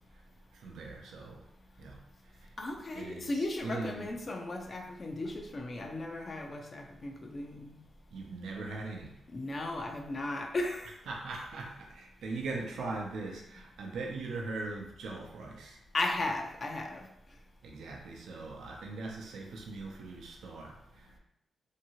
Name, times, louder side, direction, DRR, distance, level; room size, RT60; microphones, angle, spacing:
voice 1, 0.5-1.5 1.8-2.0 2.9-4.2 8.1-9.1 11.1-15.8 17.6-21.2, right 3 dB, 85° right, 0 dB, 0.5 m, -40 dB
voice 2, 2.6-7.8 9.3-10.9 15.9-17.1, left 2 dB, 45° left, 2 dB, 0.5 m, -36 dB
2.8 x 2.7 x 2.8 m, 0.79 s
cardioid pair, 70°, 0 cm